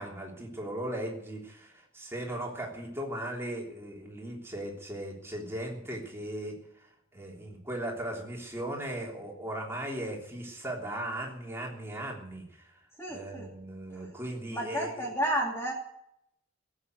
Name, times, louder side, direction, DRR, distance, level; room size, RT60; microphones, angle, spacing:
voice 1, 0.0-6.6 7.1-12.8 13.1-15.1, right 1 dB, 10° right, -1 dB, 3.3 m, -37 dB
voice 2, 13.0-13.5 14.5-15.7, equal, 10° left, -1 dB, 2.5 m, -31 dB
18.0 x 8.6 x 8.2 m, 0.75 s
head